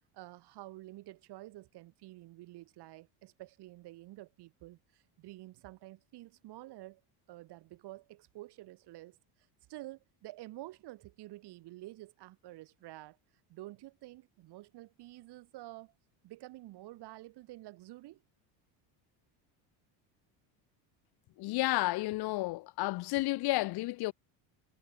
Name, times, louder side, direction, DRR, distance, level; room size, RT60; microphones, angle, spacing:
voice 1, 0.1-7.0 7.3-9.2 9.7-13.2 13.5-15.9 16.2-18.2, right 17 dB, 60° right, 5.0 m, -49 dB
voice 2, 21.4-24.1, left 20 dB, 55° left, 1.0 m, -31 dB
cardioid pair, 135°, 46 cm